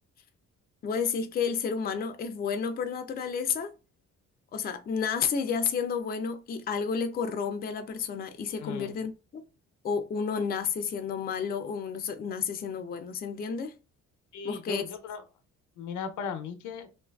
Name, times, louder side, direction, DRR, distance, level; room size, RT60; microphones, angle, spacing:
voice 1, 0.8-3.7 4.5-9.4 9.8-13.7 14.4-14.8, left 6 dB, 30° left, 0.4 m, -31 dB
voice 2, 8.6-9.0 14.3-15.2 15.8-16.9, left 6 dB, 80° left, 0.6 m, -37 dB
2.7 x 2.4 x 2.2 m
cardioid pair, 90°, 30 cm